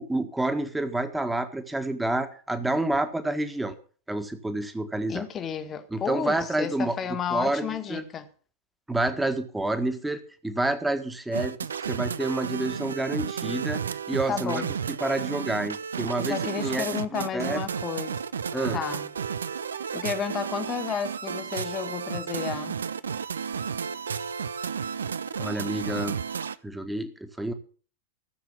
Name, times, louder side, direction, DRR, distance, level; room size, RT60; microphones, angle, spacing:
voice 1, 0.0-3.7 4.1-5.2 5.9-7.0 7.3-8.0 8.9-11.6 11.8-13.8 14.1-14.6 15.0-16.8 17.1-17.6 18.5-18.8 25.4-26.2 26.6-27.5, right 2 dB, 5° right, 1.7 m, -28 dB
voice 2, 5.1-8.3 14.3-14.7 16.2-18.2 18.7-19.1 19.9-22.8, left 7 dB, 25° left, 1.6 m, -32 dB
sound 1, 11.3-26.5, right 6 dB, 70° right, 0.6 m, -32 dB
15.0 x 7.4 x 7.2 m
figure-of-eight pair, 90°, 0 cm